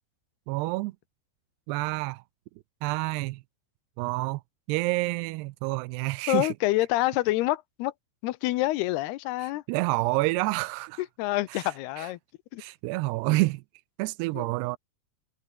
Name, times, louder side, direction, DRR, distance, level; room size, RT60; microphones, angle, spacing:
voice 1, 0.5-1.0 1.7-2.2 2.8-3.4 4.0-4.4 4.7-6.5 9.4-11.0 11.5-12.1 12.6-13.6 14.0-14.8, right 22 dB, 90° right, 2.7 m, -28 dB
voice 2, 6.3-7.9 8.2-9.6 11.2-12.2 12.5-12.6 14.3-14.4, left 17 dB, 85° left, 2.8 m, -27 dB
omnidirectional pair, 4.7 m